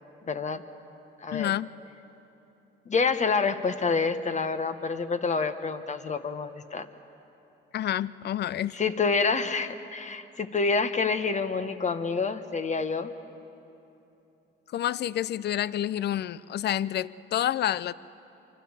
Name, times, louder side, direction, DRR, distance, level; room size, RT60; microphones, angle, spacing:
voice 1, 0.3-0.6 1.2-1.5 2.9-6.9 8.7-13.1, left 4 dB, 35° left, 10 dB, 1.3 m, -27 dB
voice 2, 1.3-1.7 7.7-8.8 14.7-17.9, left 11 dB, 55° left, 19 dB, 0.5 m, -29 dB
25.5 x 24.5 x 7.3 m, 2.9 s
cardioid pair, 90°, 20 cm